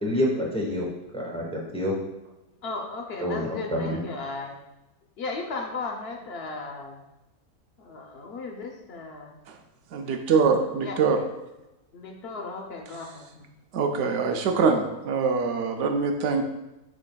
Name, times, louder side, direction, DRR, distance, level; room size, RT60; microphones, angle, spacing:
voice 1, 0.0-0.9 1.1-1.5 1.7-1.9 3.2-4.0, left 1 dB, 5° left, -3 dB, 0.5 m, -27 dB
voice 2, 2.6-4.6 5.2-7.0 7.8-9.3 10.8-11.0 11.9-13.5, left 3 dB, 60° left, 1 dB, 0.6 m, -35 dB
voice 3, 9.9-11.2 13.7-16.4, right 5 dB, 65° right, 4 dB, 0.8 m, -23 dB
5.0 x 4.8 x 2.2 m, 0.98 s
omnidirectional pair, 1.6 m